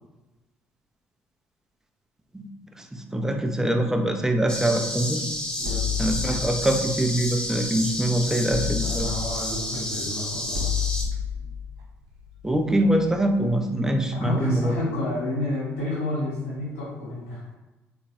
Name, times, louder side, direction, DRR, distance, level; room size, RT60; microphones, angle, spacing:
voice 1, 2.8-5.2 6.0-9.1 12.4-14.8, right 1 dB, 5° right, 4 dB, 0.4 m, -24 dB
sound 1, 4.5-11.0, left 1 dB, 10° left, 0.9 m, -31 dB
voice 2, 5.6-6.1 8.8-10.7 14.1-17.6, left 1 dB, 70° left, -7 dB, 1.1 m, -30 dB
sound 2, 5.6-8.0 8.5-13.2, left 7 dB, 60° right, 0.6 m, -31 dB
3.7 x 2.3 x 2.8 m, 1.1 s
figure-of-eight pair, 50°, 7 cm